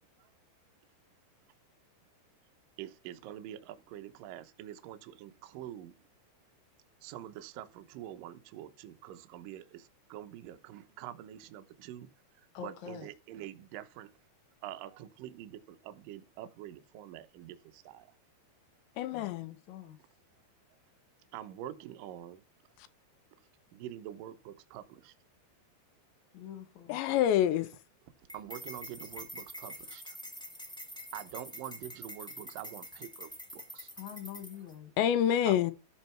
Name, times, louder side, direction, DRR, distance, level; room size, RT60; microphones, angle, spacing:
voice 1, 2.8-5.9 7.0-12.1 12.6-14.1 14.6-18.1 21.3-22.4 23.7-25.1 28.3-30.2 31.1-33.9 35.5-35.6, right 12 dB, 90° right, 1.9 m, -45 dB
voice 2, 12.5-13.1 19.1-20.0 26.3-27.0 34.0-34.9, left 9 dB, 65° left, 1.8 m, -45 dB
voice 3, 19.0-19.5 26.9-27.7 35.0-35.7, left 10 dB, 85° left, 2.9 m, -27 dB
sound 1, 28.3-34.7, equal, ahead, 1.0 m, -46 dB
13.0 x 4.4 x 4.5 m
omnidirectional pair, 5.3 m